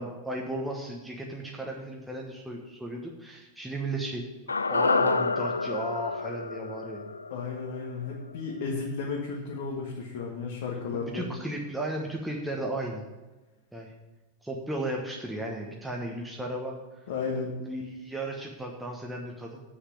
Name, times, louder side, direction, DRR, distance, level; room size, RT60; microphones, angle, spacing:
voice 1, 0.0-4.2 4.7-7.1 10.9-13.0 13.7-13.9 14.4-16.7 17.6-19.6, right 1 dB, 5° right, -1 dB, 1.2 m, -35 dB
sound 1, 4.5-8.8 9.1-9.2, left 4 dB, 75° left, 0.3 m, -29 dB
voice 2, 7.3-11.3 17.1-17.5, left 4 dB, 55° left, -2 dB, 1.5 m, -33 dB
8.0 x 6.3 x 7.5 m, 1.1 s
figure-of-eight pair, 90°, 0 cm